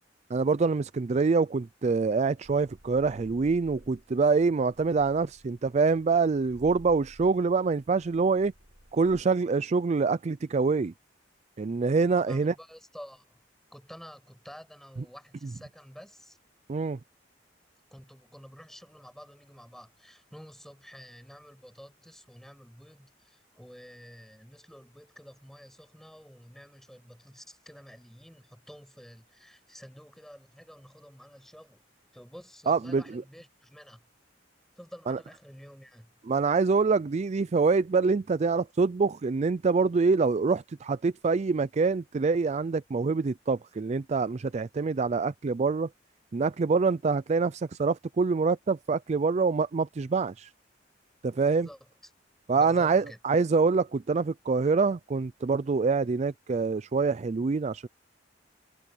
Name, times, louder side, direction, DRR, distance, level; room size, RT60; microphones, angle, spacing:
voice 1, 0.3-8.5 8.9-10.9 11.6-12.5 16.7-17.0 32.7-33.2 35.1-35.2 36.3-45.9 46.3-50.5 51.2-51.7 52.5-57.9, right 4 dB, 40° right, 0.4 m, -25 dB
sound 1, 2.4-9.2, equal, 80° right, 5.6 m, -55 dB
voice 2, 12.0-13.4 13.7-16.4 17.9-31.9 32.1-34.0 34.8-36.1 51.5-51.8 52.5-53.2, equal, ahead, 6.5 m, -50 dB
head